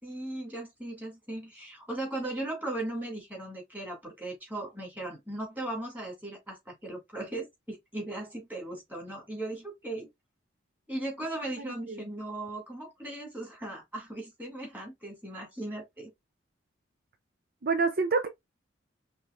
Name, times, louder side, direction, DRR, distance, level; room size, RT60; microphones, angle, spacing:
voice 1, 0.0-10.1 10.9-16.1, right 1 dB, 10° right, 2.3 m, -38 dB
voice 2, 11.6-12.1 17.6-18.3, right 4 dB, 50° right, 0.5 m, -28 dB
5.4 x 3.0 x 2.4 m
head